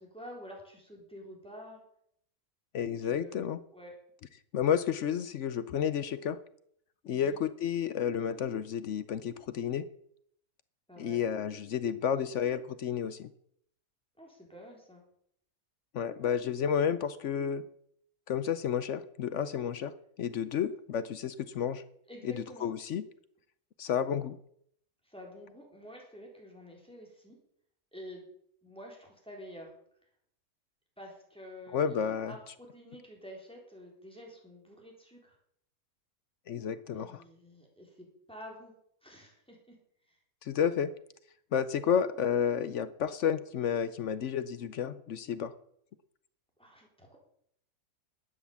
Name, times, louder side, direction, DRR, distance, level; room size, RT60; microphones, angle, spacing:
voice 1, 0.0-1.8 2.8-4.0 7.1-7.4 10.9-11.3 14.2-15.0 22.1-22.7 25.0-27.4 27.9-28.3 28.6-29.7 31.0-35.4 36.9-38.7 39.0-39.8 40.1-40.2 46.6-47.2, equal, 5° left, -1 dB, 3.8 m, -49 dB
voice 2, 2.7-3.6 4.5-6.4 7.0-9.8 11.0-13.3 15.9-17.6 18.3-21.8 22.2-23.0 23.8-24.4 31.7-32.3 36.5-37.2 40.4-40.9 41.5-45.5, left 8 dB, 60° left, 14 dB, 0.9 m, -31 dB
12.0 x 9.4 x 7.2 m, 0.69 s
omnidirectional pair, 1.6 m